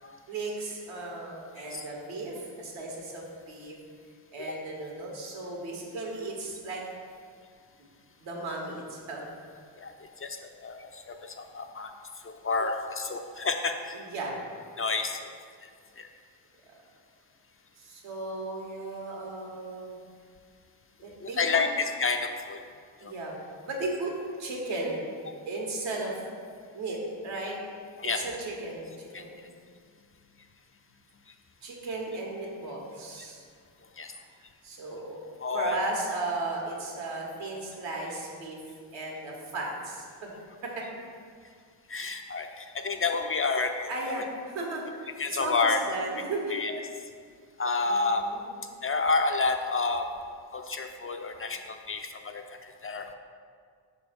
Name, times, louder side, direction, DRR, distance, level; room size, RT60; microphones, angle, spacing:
voice 1, 0.3-3.8 4.3-6.8 8.2-9.2 14.1-14.3 17.8-19.9 21.0-21.6 23.0-23.3 23.7-24.1 24.4-25.0 25.4-26.2 26.7-27.6 28.2-29.4 31.6-33.4 34.6-35.2 35.5-38.6 38.9-40.3 40.6-40.8 43.9-45.1 45.4-46.6 47.8-48.4, right 2 dB, 80° right, -1 dB, 1.6 m, -35 dB
voice 2, 9.8-11.9 12.2-14.0 14.8-15.3 15.6-15.7 16.0-16.1 21.2-22.6 23.0-23.1 28.0-28.2 29.1-29.2 34.0-34.1 35.4-35.8 41.9-43.7 45.2-45.8 46.5-46.8 47.6-48.2 48.8-50.1 50.5-53.1, left 4 dB, 30° left, 5 dB, 0.4 m, -30 dB
5.8 x 3.6 x 5.2 m, 2.1 s
supercardioid pair, 65°, 46 cm